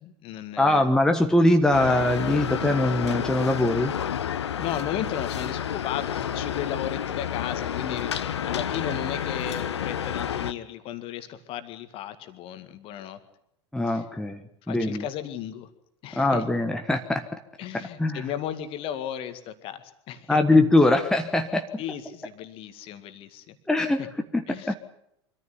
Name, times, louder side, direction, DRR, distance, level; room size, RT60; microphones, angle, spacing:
voice 1, 0.0-0.9 4.4-13.2 13.9-14.0 14.7-15.7 16.0-16.4 17.6-20.4 21.8-23.6 24.0-24.1 24.5-24.8, left 10 dB, 35° left, 10 dB, 1.9 m, -35 dB
voice 2, 0.6-3.9 13.7-15.0 16.2-17.3 17.7-18.2 20.3-21.7 23.7-24.1 24.3-24.7, left 1 dB, 5° left, 5 dB, 1.3 m, -22 dB
sound 1, 1.7-10.5, left 9 dB, 65° left, 1.0 m, -30 dB
24.5 x 14.0 x 9.8 m, 0.76 s
figure-of-eight pair, 85°, 15 cm